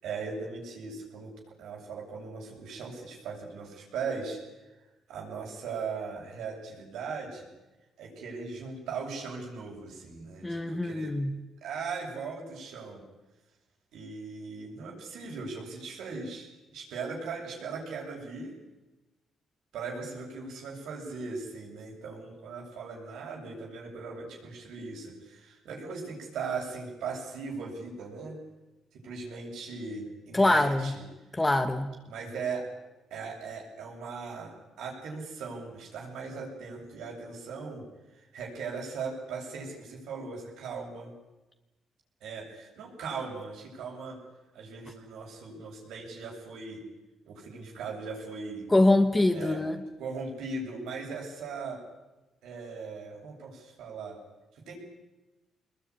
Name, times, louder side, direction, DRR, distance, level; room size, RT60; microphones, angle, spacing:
voice 1, 0.0-4.4 5.1-7.5 8.0-11.2 11.6-13.0 13.9-16.5 16.7-18.6 19.7-28.4 28.9-31.0 32.0-32.7 33.1-37.8 38.2-41.1 42.2-44.2 44.5-46.8 47.3-48.7 49.3-49.6 50.0-51.8 52.4-54.2 54.6-54.7, right 4 dB, 80° right, -1 dB, 7.8 m, -39 dB
voice 2, 10.4-11.4 30.3-30.9 31.4-31.9 48.7-49.8, left 2 dB, 15° left, 7 dB, 1.9 m, -24 dB
23.5 x 20.5 x 10.0 m, 1.1 s
cardioid pair, 90°, 0 cm